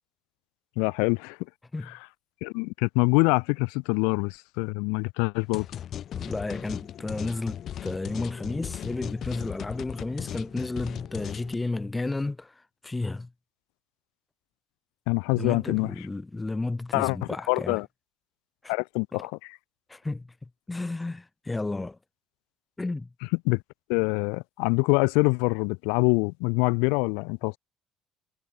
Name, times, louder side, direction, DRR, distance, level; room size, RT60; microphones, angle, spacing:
voice 1, 0.8-1.4 2.4-5.7 15.1-15.9 16.9-17.2 17.5-17.9 18.7-19.6 23.4-23.6 23.9-27.6, left 36 dB, 90° left, 1.1 m, -25 dB
sound 1, 5.5-11.5, left 10 dB, 55° left, 3.0 m, -37 dB
voice 2, 6.1-12.5 12.8-13.3 15.4-17.8 18.6-18.7 19.1-19.3 19.9-20.3 20.7-22.0 22.8-23.1, left 2 dB, 15° left, 1.0 m, -32 dB
supercardioid pair, 95°, 0 cm